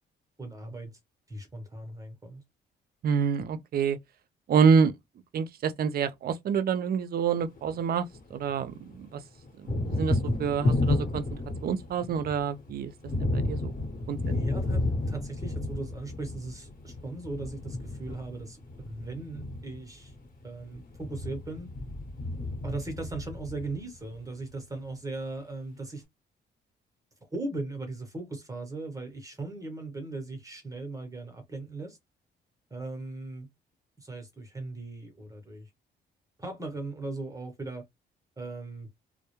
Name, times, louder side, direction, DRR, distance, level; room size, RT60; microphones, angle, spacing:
voice 1, 0.4-0.9 1.3-2.4 14.2-20.1 20.4-21.7 22.6-26.0 27.3-32.0 32.7-33.5 34.0-35.7 36.4-37.9 38.4-38.9, right 2 dB, 15° right, 0.8 m, -38 dB
voice 2, 3.0-4.0 4.5-4.9 5.3-9.2 9.6-11.2 11.6-12.9 13.2-13.7 14.1-14.2, right 6 dB, 50° right, 0.4 m, -27 dB
Thunder, 7.4-8.6 8.9-24.2, left 2 dB, 40° left, 1.0 m, -32 dB
2.2 x 2.0 x 2.9 m
cardioid pair, 90°, 20 cm